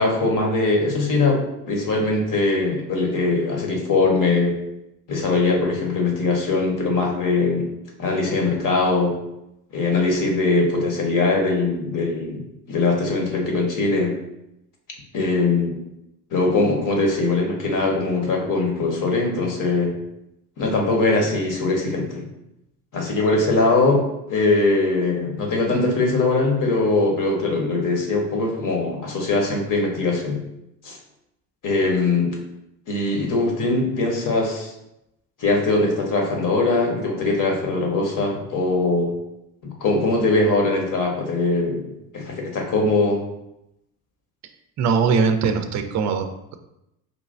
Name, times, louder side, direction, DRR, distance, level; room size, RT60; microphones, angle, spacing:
voice 1, 0.0-1.4 1.7-4.5 5.1-7.7 8.0-9.1 9.7-12.4 12.7-14.1 15.1-15.8 16.3-19.9 20.6-22.3 22.9-30.4 30.8-31.0 31.6-32.3 32.9-34.7 35.4-39.1 39.6-41.8 42.1-43.2, left 3 dB, 40° left, 0 dB, 1.3 m, -21 dB
voice 2, 44.8-46.6, right 5 dB, 35° right, 7 dB, 0.5 m, -21 dB
4.9 x 2.9 x 2.6 m, 0.86 s
hypercardioid pair, 60°, 50 cm